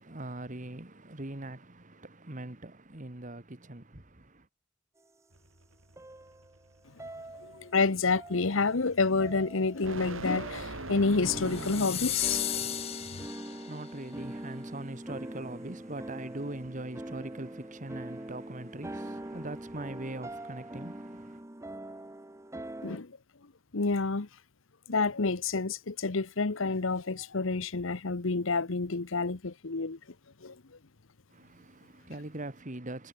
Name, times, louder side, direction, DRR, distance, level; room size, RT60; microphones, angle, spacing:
voice 1, 0.0-4.5 13.0-21.4 31.3-33.1, right 1 dB, 35° right, 1.9 m, -42 dB
sound 1, 5.3-12.3, right 2 dB, 70° right, 5.2 m, -43 dB
sound 2, 6.0-6.7 7.0-7.8 8.1-8.8 9.2-10.0 10.3-10.8 11.2-23.0, right 1 dB, 15° right, 0.9 m, -43 dB
voice 2, 7.4-13.0 22.8-23.1 23.7-24.3 24.9-30.0 30.4-30.5, left 4 dB, 70° left, 1.0 m, -29 dB
sound 3, 11.4-13.9, left 11 dB, 30° left, 0.4 m, -34 dB
head